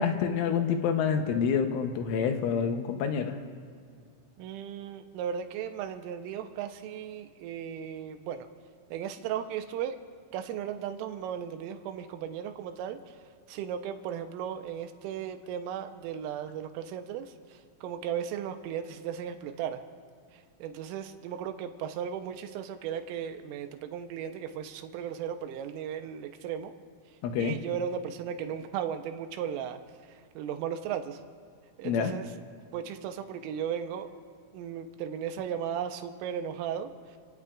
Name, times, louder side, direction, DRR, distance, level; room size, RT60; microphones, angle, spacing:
voice 1, 0.0-3.4 27.2-27.6 31.8-32.1, left 6 dB, 80° left, 6 dB, 3.2 m, -27 dB
voice 2, 4.4-8.5 8.9-10.0 10.3-13.2 13.5-19.8 20.3-26.7 27.4-29.8 30.1-31.2 31.8-32.3 32.7-34.1 34.5-37.2, right 8 dB, 85° right, 6 dB, 3.4 m, -36 dB
30.0 x 17.0 x 2.5 m, 2.2 s
omnidirectional pair, 5.8 m